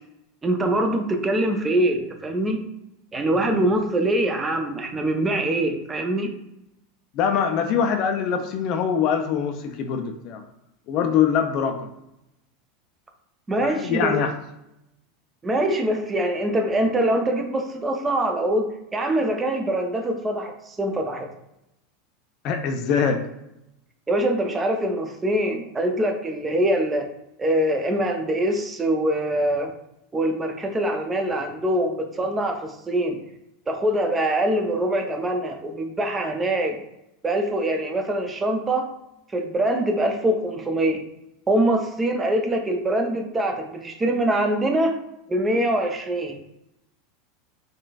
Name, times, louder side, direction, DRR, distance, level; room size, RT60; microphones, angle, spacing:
voice 1, 0.4-2.6 3.1-6.3 13.5-14.1 15.4-21.3 24.1-27.1 27.4-29.7 30.1-33.2 33.7-36.8 37.2-38.9 39.3-41.0 41.5-44.9 45.3-46.4, right 1 dB, 20° right, 4 dB, 0.5 m, -23 dB
voice 2, 7.1-10.4 10.9-11.9 13.6-14.3 22.4-23.2, left 7 dB, 45° left, 5 dB, 0.4 m, -23 dB
3.7 x 2.4 x 2.3 m, 0.85 s
figure-of-eight pair, 80°, 0 cm